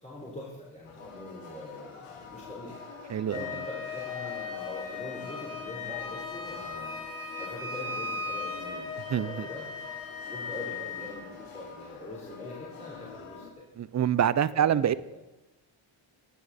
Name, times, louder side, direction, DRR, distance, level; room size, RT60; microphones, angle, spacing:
voice 1, 0.0-2.8 3.2-7.0 7.4-9.7 10.2-13.7 14.5-15.2, left 1 dB, 15° left, -5 dB, 3.5 m, -43 dB
sound 1, 0.8-13.5, left 5 dB, 85° left, 2.2 m, -46 dB
Wind instrument woodwind instrument, 3.3-11.1, left 4 dB, 45° left, 4.2 m, -37 dB
voice 2, 9.1-9.5 13.8-15.0, right 9 dB, 35° right, 17 dB, 0.4 m, -25 dB
15.0 x 9.7 x 4.1 m, 1.1 s
cardioid pair, 110°, 50 cm